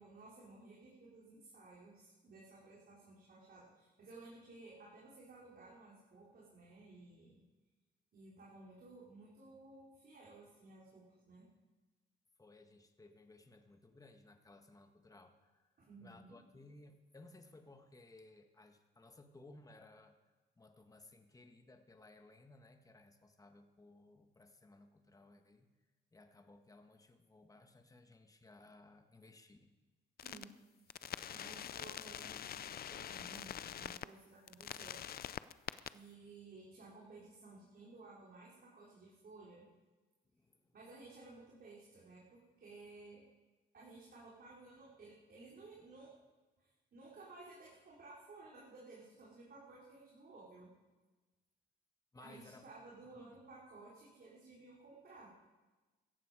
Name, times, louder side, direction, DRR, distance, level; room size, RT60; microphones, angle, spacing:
voice 1, 0.0-7.4 8.1-11.5 15.8-16.4 30.2-30.5 30.8-35.0 35.8-39.6 40.7-43.2 43.7-46.1 46.6-50.7 52.2-55.3, right 3 dB, 50° right, -6 dB, 3.9 m, -56 dB
voice 2, 12.4-15.7 16.0-20.1 20.6-25.7 26.1-29.7 40.2-40.7 52.1-52.7 53.1-53.4, left 2 dB, 15° left, 6 dB, 1.5 m, -60 dB
sound 1, 30.2-30.4 30.9-34.1 34.5-35.9, left 10 dB, 50° left, 0.5 m, -45 dB
16.5 x 14.5 x 4.9 m, 1.2 s
cardioid pair, 90°, 20 cm